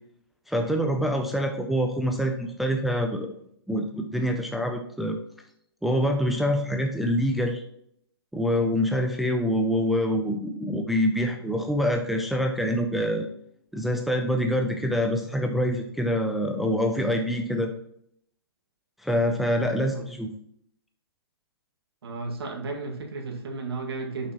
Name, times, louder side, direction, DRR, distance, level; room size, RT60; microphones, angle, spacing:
voice 1, 0.5-3.4 3.7-5.2 5.8-7.6 8.3-13.3 13.7-17.7 19.0-20.3, equal, ahead, 3 dB, 0.3 m, -25 dB
voice 2, 22.0-24.3, right 3 dB, 70° right, 1 dB, 1.8 m, -33 dB
6.1 x 6.0 x 2.9 m, 0.69 s
hypercardioid pair, 150°, 14 cm